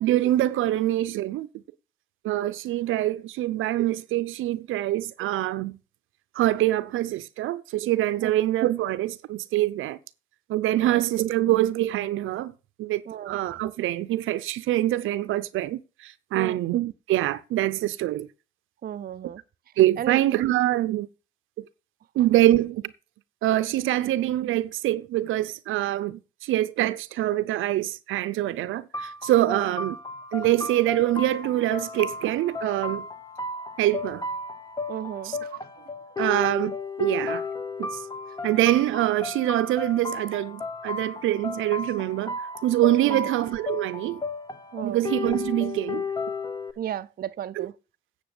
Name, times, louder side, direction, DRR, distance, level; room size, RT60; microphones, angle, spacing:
voice 1, 0.0-1.5 2.2-5.8 6.3-10.0 10.5-12.5 12.8-18.3 19.8-21.1 21.6-21.7 22.2-22.8 23.4-30.0 30.3-33.0 33.8-34.2 35.2-35.4 36.2-37.4 37.8-38.0 38.4-44.2 44.8-46.0 47.6-47.7, right 14 dB, 85° right, 0.7 m, -25 dB
voice 2, 13.1-13.4 16.3-16.6 18.8-19.4 20.0-20.2 29.4-29.7 34.9-35.5 43.0-43.3 44.7-45.0 46.8-47.7, right 10 dB, 50° right, 0.6 m, -34 dB
sound 1, 28.9-46.7, left 3 dB, 20° left, 1.2 m, -34 dB
9.2 x 6.9 x 6.8 m
cardioid pair, 90°, 20 cm